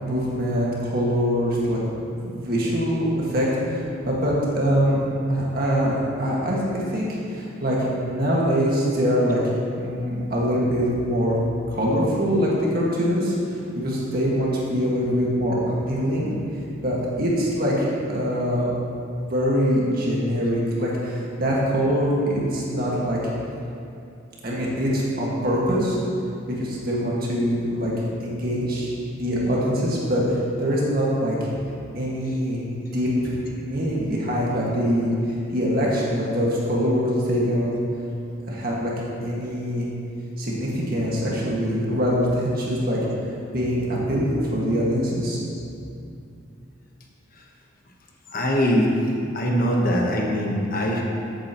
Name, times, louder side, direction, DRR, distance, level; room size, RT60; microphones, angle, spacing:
voice 1, 0.0-5.0 5.3-5.9 6.2-9.4 9.8-11.4 11.7-13.4 13.7-15.6 15.9-16.3 16.8-18.7 19.2-23.2 24.4-26.0 26.6-27.9 28.2-31.5 31.9-33.4 33.6-35.1 35.5-37.8 38.5-38.9 39.2-39.9 40.4-43.0 43.5-45.4, equal, 50° right, -5 dB, 1.8 m, -23 dB
voice 2, 48.3-48.9 49.3-51.0, equal, 45° left, -1 dB, 1.1 m, -22 dB
14.0 x 8.5 x 3.0 m, 2.6 s
head